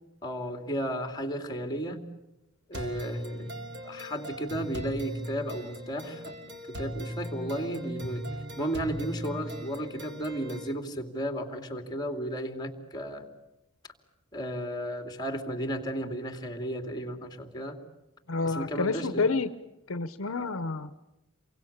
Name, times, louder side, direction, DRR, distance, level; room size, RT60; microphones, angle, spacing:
voice 1, 0.2-2.0 2.7-6.3 6.7-8.2 8.6-13.3 14.3-17.8 18.4-19.3, right 1 dB, 20° left, 5 dB, 2.8 m, -34 dB
sound 1, 2.7-10.7, equal, 55° right, 3.2 m, -39 dB
voice 2, 18.3-19.5 19.9-20.9, left 3 dB, 70° left, 12 dB, 0.9 m, -29 dB
29.0 x 23.5 x 8.8 m, 0.96 s
head